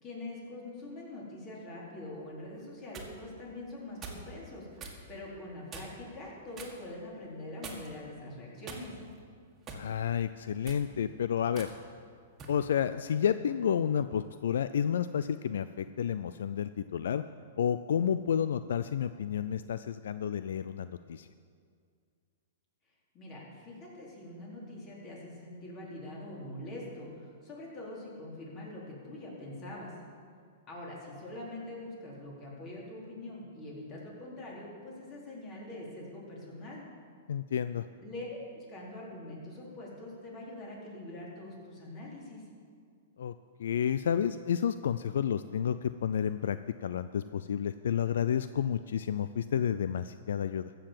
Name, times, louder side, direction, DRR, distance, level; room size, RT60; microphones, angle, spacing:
voice 1, 0.0-8.9 23.1-29.9 30.7-36.8 38.0-42.4, left 1 dB, 30° left, -4 dB, 4.1 m, -44 dB
sound 1, 2.6-3.1 4.0-4.3 4.8-5.0 5.7-6.1 6.6-6.8 7.6-8.0 8.6-9.2 9.7-9.9 10.5-10.9 11.6-11.7 12.4-12.6, right 4 dB, 20° right, 1.9 m, -44 dB
voice 2, 9.7-11.7 12.5-17.2 17.6-21.3 37.3-37.9 43.2-43.3 43.6-50.7, left 8 dB, 75° left, 12 dB, 0.4 m, -30 dB
14.5 x 6.9 x 7.6 m, 2.2 s
hypercardioid pair, 135°, 0 cm